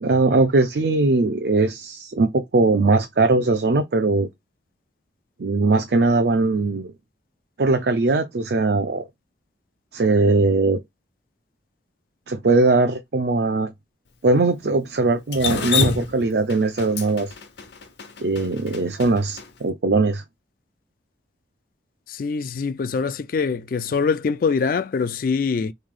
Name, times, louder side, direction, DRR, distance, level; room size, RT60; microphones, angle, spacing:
voice 1, 0.0-4.3 5.4-6.9 7.6-9.0 9.9-10.8 12.3-13.7 14.2-17.3 18.2-20.2, right 3 dB, 60° right, 0.5 m, -20 dB
Drip, 15.3-19.4, left 4 dB, 75° left, 0.8 m, -26 dB
voice 2, 22.1-25.7, left 5 dB, 50° left, 0.3 m, -24 dB
3.3 x 2.7 x 3.7 m
head